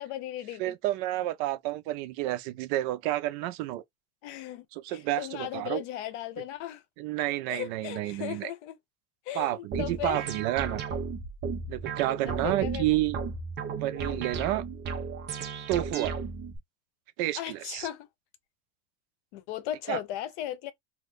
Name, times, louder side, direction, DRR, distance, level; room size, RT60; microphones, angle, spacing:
voice 1, 0.0-0.7 4.2-6.8 7.5-8.8 9.3-10.2 12.1-12.9 17.4-18.1 19.3-20.7, left 12 dB, 75° left, 0.8 m, -37 dB
voice 2, 0.6-3.8 4.7-5.8 7.0-8.5 9.3-10.8 11.7-13.2 13.8-14.6 15.7-16.2 17.2-17.9 19.9-20.0, right 15 dB, 60° right, 0.6 m, -30 dB
sound 1, 9.7-16.6, right 5 dB, 30° right, 0.8 m, -34 dB
2.6 x 2.5 x 3.4 m
cardioid pair, 155°, 35 cm